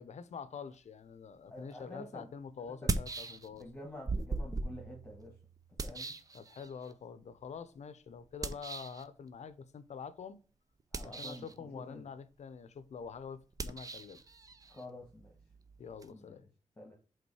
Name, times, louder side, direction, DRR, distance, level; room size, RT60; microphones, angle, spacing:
voice 1, 0.0-3.6 6.3-10.4 11.0-14.2 15.8-16.4, left 6 dB, 65° left, 0.6 m, -46 dB
voice 2, 1.5-2.3 2.6-3.0 3.5-5.3 5.8-6.1 10.9-12.1 14.7-15.3 16.1-16.5 16.8-16.9, left 1 dB, 15° left, 1.5 m, -49 dB
sound 1, 1.7-1.8 2.7-3.7 4.1-6.9 8.4-9.0 10.8-11.6 13.5-16.1, right 3 dB, 30° right, 0.5 m, -39 dB
5.3 x 3.7 x 4.8 m
wide cardioid pair, 115°, 12 cm